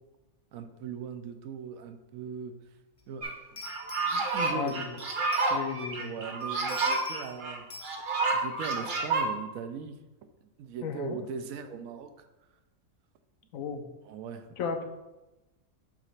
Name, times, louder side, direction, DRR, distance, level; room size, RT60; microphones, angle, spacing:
voice 1, 0.5-2.5 3.1-3.6 4.1-4.8 6.0-7.7 8.3-10.0 10.4-12.3 14.0-14.5, right 6 dB, 80° right, 8 dB, 1.0 m, -39 dB
sound 1, 3.0-3.1 3.6-6.0 6.4-7.4 7.7-8.0, left 3 dB, 40° left, 0.5 m, -45 dB
sound 2, 3.2-3.3 3.6-9.3, right 3 dB, 45° right, 0.9 m, -29 dB
voice 2, 4.5-5.0 5.5-6.1 10.8-11.2 13.5-13.9 14.6-14.8, left 6 dB, 75° left, 7 dB, 1.1 m, -34 dB
6.5 x 3.0 x 5.6 m, 1.0 s
omnidirectional pair, 1.5 m